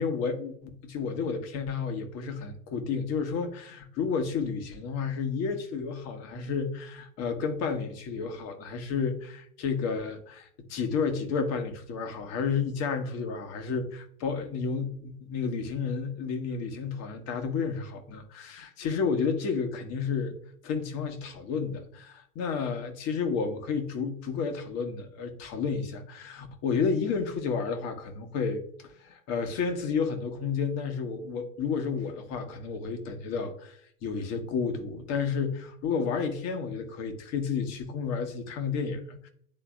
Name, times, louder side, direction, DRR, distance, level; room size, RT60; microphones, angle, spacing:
voice 1, 0.0-20.3 20.6-39.3, left 5 dB, 40° left, 1.3 m, -31 dB
11.0 x 3.9 x 2.4 m
figure-of-eight pair, 85°, 40 cm